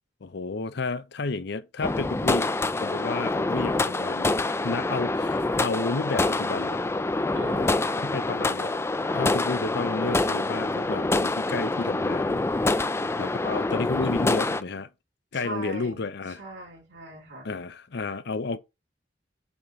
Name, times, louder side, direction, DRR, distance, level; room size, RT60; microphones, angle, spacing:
voice 1, 0.2-6.8 8.0-8.7 9.1-12.4 13.2-14.9 15.3-16.4 17.4-18.6, left 3 dB, 65° left, 0.6 m, -31 dB
sound 1, 1.8-14.6, left 2 dB, 15° left, 0.4 m, -26 dB
voice 2, 7.3-8.0 15.3-16.0 16.4-17.5, right 2 dB, 75° right, 3.1 m, -39 dB
7.0 x 3.0 x 5.0 m
head